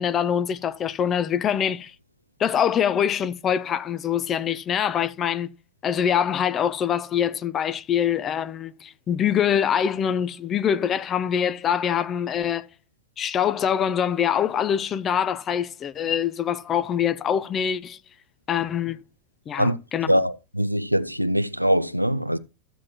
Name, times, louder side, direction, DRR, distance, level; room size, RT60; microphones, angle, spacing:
voice 1, 0.0-1.9 2.4-5.5 5.8-12.7 13.2-18.0 18.5-19.0 19.5-20.1, left 8 dB, 25° left, 0.6 m, -24 dB
voice 2, 20.1-22.4, equal, 90° right, 0.5 m, -22 dB
13.5 x 7.4 x 3.0 m
figure-of-eight pair, 90°, 0 cm